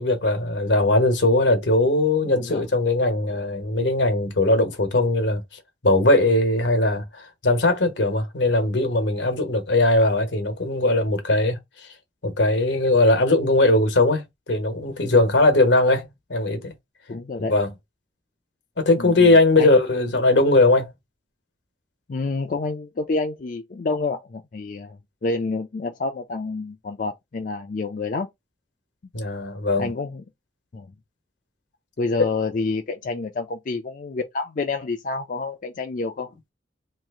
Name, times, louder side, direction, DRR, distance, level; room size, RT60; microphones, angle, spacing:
voice 1, 0.0-5.4 5.8-11.6 12.2-16.7 17.5-17.7 18.8-20.9 29.1-29.9, left 2 dB, 85° left, 1.1 m, -20 dB
voice 2, 2.2-2.7 17.1-17.6 19.0-19.7 22.1-28.3 29.8-30.2 30.7-30.9 32.0-36.3, left 3 dB, 45° left, 0.4 m, -28 dB
3.0 x 2.4 x 3.5 m
head